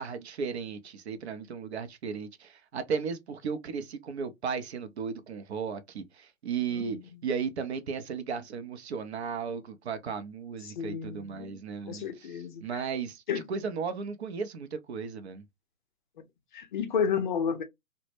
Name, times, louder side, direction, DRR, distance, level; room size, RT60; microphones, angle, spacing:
voice 1, 0.0-12.1 12.6-13.2 13.5-15.4, right 6 dB, 50° right, 0.5 m, -35 dB
voice 2, 6.7-7.2 10.6-11.6 11.9-12.9 13.3-13.4 16.5-17.6, left 7 dB, 35° left, 0.5 m, -32 dB
2.1 x 2.0 x 3.0 m
figure-of-eight pair, 130°, 42 cm